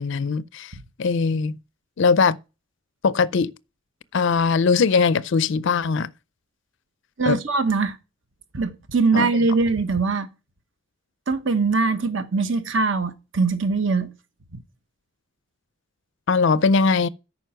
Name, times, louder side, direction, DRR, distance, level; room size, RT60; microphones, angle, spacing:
voice 1, 0.0-0.7 1.0-1.6 2.0-2.4 3.0-3.5 4.1-6.1 7.3-7.4 9.1-9.3 16.3-17.1, left 5 dB, 55° left, 0.4 m, -20 dB
voice 2, 7.2-8.0 8.5-10.3 11.3-14.1, right 4 dB, 55° right, 1.0 m, -22 dB
9.1 x 5.4 x 5.8 m
head